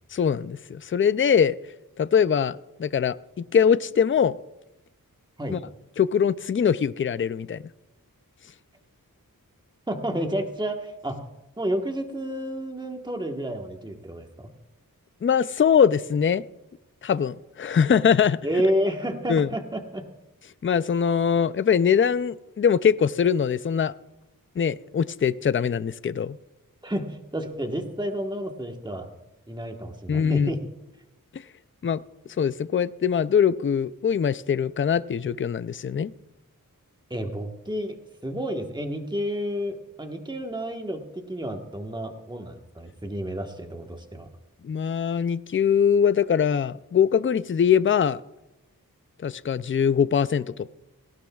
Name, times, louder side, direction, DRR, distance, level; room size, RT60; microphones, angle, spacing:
voice 1, 0.1-1.6 2.0-4.4 5.5-5.6 6.0-7.6 15.2-16.4 17.0-18.4 19.3-19.5 20.6-23.9 24.6-26.4 30.1-30.5 31.3-31.4 31.8-32.0 32.4-36.1 44.6-48.2 49.2-50.7, left 7 dB, 35° left, 16 dB, 0.4 m, -22 dB
voice 2, 9.9-11.2 11.6-14.5 18.4-20.0 26.8-29.1 29.5-30.6 37.1-38.0 38.2-44.3, equal, 15° right, 3 dB, 1.3 m, -30 dB
18.0 x 16.0 x 2.4 m, 0.97 s
wide cardioid pair, 65°, 35 cm